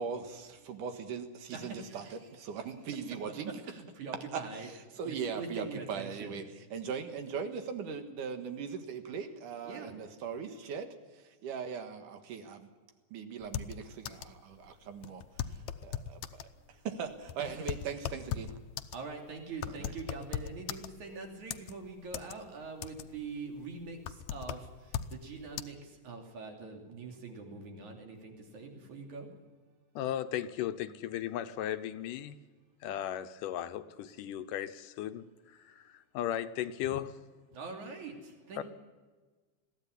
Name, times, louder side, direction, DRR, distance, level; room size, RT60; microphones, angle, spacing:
voice 1, 0.0-3.6 4.3-4.4 5.0-6.4 6.7-10.9 11.1-12.7 13.1-15.2 15.8-16.4 16.8-18.5, right 6 dB, 85° right, 7 dB, 3.2 m, -39 dB
voice 2, 1.5-2.2 3.7-6.4 9.6-9.9 17.4-17.8 18.9-29.3 37.5-38.6, right 4 dB, 65° right, 2 dB, 4.3 m, -44 dB
sound 1, 13.4-14.4 14.7-14.8 15.0-16.5 17.1-21.1 21.5-22.4 22.7-23.3 23.6-25.2 25.6-25.7, left 10 dB, 75° left, 2.0 m, -38 dB
voice 3, 30.0-32.4 32.8-37.1 38.6-38.7, left 11 dB, 90° left, 10 dB, 2.5 m, -36 dB
21.5 x 15.0 x 10.0 m, 1.4 s
omnidirectional pair, 3.6 m